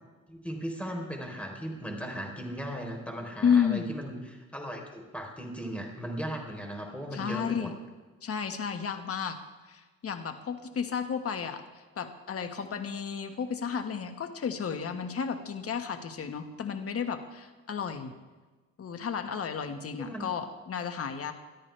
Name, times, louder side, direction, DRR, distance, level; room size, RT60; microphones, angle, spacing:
voice 1, 0.3-7.7 20.0-20.3, equal, 5° left, 1 dB, 3.8 m, -37 dB
voice 2, 3.4-3.9 7.1-7.7 8.2-9.4 9.7-11.6 12.0-18.1 18.8-21.3, left 7 dB, 50° left, 7 dB, 1.6 m, -32 dB
22.0 x 13.5 x 3.4 m, 1.3 s
cardioid pair, 90°, 30 cm